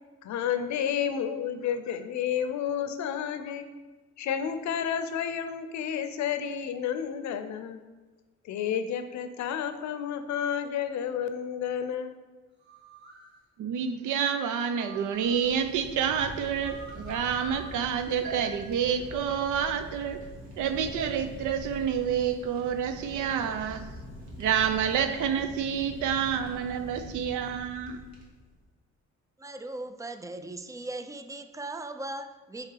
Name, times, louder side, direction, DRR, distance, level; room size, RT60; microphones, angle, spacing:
voice 1, 0.2-3.7 4.2-7.8 8.5-12.2, left 8 dB, 70° left, 0.6 m, -31 dB
sound 1, 12.6-13.3 14.3-15.5 16.4-17.9, equal, 35° right, 1.7 m, -47 dB
voice 2, 13.6-20.2 20.6-23.8 24.4-28.1, right 8 dB, 80° right, 0.6 m, -28 dB
Fire, 15.0-28.6, equal, 65° right, 1.8 m, -44 dB
voice 3, 29.4-32.7, right 2 dB, 10° right, 0.3 m, -38 dB
4.8 x 4.3 x 4.6 m
cardioid pair, 90°, 30 cm